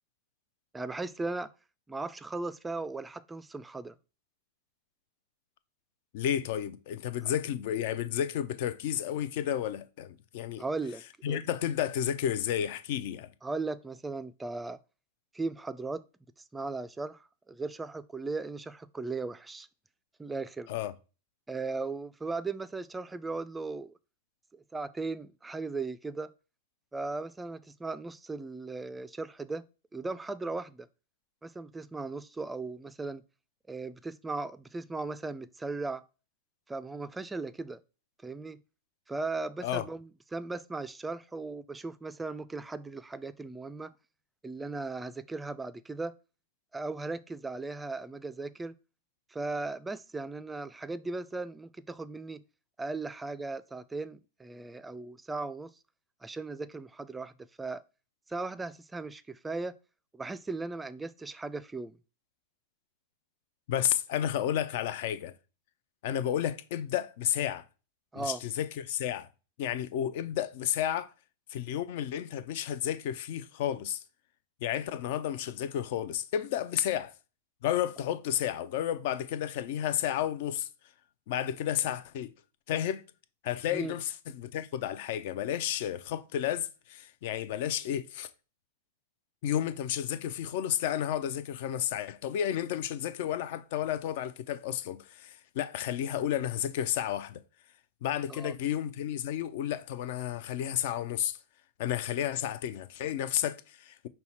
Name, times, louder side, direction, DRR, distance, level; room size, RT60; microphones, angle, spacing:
voice 1, 0.7-1.5 1.9-3.9 10.6-11.4 13.4-14.8 15.3-16.0 16.5-17.2 17.5-19.7 20.2-20.7 21.5-23.9 24.5-26.3 26.9-29.6 29.9-30.9 31.4-33.2 33.7-36.0 36.7-37.8 38.2-38.6 39.1-43.9 44.4-46.1 46.7-48.7 49.3-52.4 52.8-55.7 56.2-57.3 57.6-57.8 58.3-59.8 60.1-62.0 68.1-68.4 83.7-83.9 98.3-98.5, right 3 dB, 10° right, 0.3 m, -37 dB
voice 2, 6.1-10.6 11.2-13.3 20.7-20.9 39.6-39.9 63.7-65.3 66.0-67.7 68.1-69.3 69.6-71.1 71.5-74.0 74.6-77.1 77.6-80.7 81.3-82.3 82.7-83.0 83.4-88.3 89.4-97.4 98.0-101.4 101.8-104.1, left 10 dB, 55° left, 0.5 m, -32 dB
5.5 x 2.2 x 4.2 m
hypercardioid pair, 105°, 0 cm